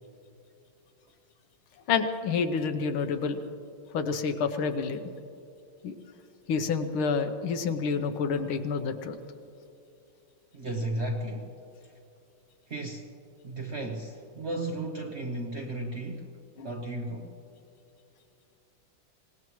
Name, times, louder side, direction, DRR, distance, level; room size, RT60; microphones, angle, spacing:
voice 1, 1.9-3.4 3.9-5.0 5.8-5.9 6.5-9.2 16.6-16.7, left 5 dB, 80° left, 8 dB, 1.7 m, -28 dB
voice 2, 10.5-11.6 12.7-13.1 13.4-16.3 16.6-17.4, right 1 dB, 50° right, 1 dB, 0.9 m, -34 dB
24.5 x 18.5 x 3.1 m, 2.7 s
omnidirectional pair, 2.3 m